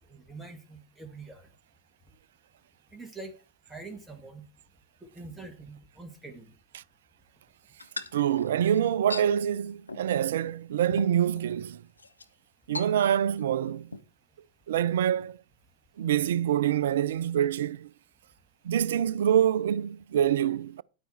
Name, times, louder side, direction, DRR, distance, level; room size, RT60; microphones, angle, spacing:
voice 1, 0.1-1.5 2.9-3.3 3.7-4.4 5.0-6.5, right 3 dB, 5° right, 2.3 m, -44 dB
sound 1, 7.8-9.3 9.9-10.1 10.5-10.6 10.9-11.5 12.0-12.3 12.7-13.4 13.7-14.0, left 3 dB, 80° left, 0.8 m, -39 dB
voice 2, 8.1-11.8 12.7-13.9 14.7-15.4 16.0-17.9 18.6-20.8, right 10 dB, 60° right, 0.4 m, -26 dB
10.5 x 9.2 x 4.3 m
figure-of-eight pair, 90°, 0 cm